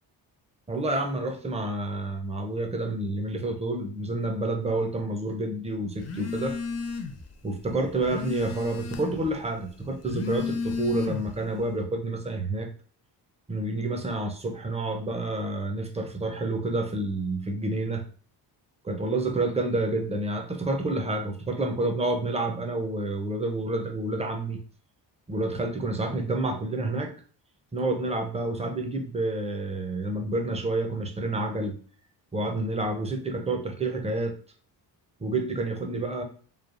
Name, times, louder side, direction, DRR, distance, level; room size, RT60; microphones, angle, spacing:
voice 1, 0.7-6.6 7.4-12.7 13.5-18.0 18.8-24.6 25.3-27.1 27.7-31.7 32.3-34.4 35.2-36.2, right 2 dB, 15° right, 3 dB, 0.5 m, -29 dB
Telephone, 6.0-7.3 7.6-9.3 9.9-11.4, left 5 dB, 35° left, 0.4 m, -33 dB
3.2 x 2.1 x 2.4 m, 0.44 s
cardioid pair, 90°, 45 cm